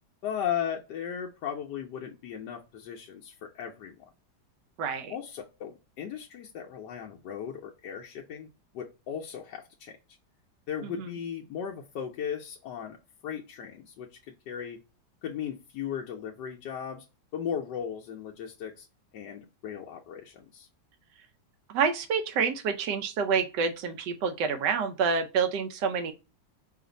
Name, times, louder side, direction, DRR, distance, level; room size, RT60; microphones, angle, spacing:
voice 1, 0.2-4.0 5.1-8.5 8.7-10.0 10.7-13.0 13.2-14.8 15.2-17.1 17.3-18.9 19.1-20.7, left 8 dB, 90° left, 0 dB, 1.3 m, -36 dB
voice 2, 4.8-5.1 11.0-11.1 21.7-26.1, right 6 dB, 85° right, 7 dB, 1.3 m, -28 dB
5.0 x 2.5 x 3.9 m, 0.30 s
omnidirectional pair, 1.8 m